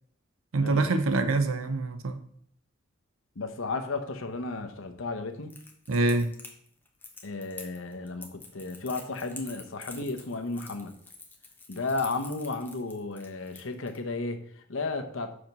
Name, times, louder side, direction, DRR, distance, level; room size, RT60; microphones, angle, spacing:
voice 1, 0.5-2.2 5.9-6.3, right 3 dB, 90° right, 0.6 m, -25 dB
voice 2, 3.4-5.5 7.2-10.9 11.7-15.3, left 3 dB, 75° left, 0.8 m, -33 dB
Crackle, 5.5-14.0, left 3 dB, 10° left, 0.9 m, -47 dB
5.3 x 5.0 x 6.0 m
head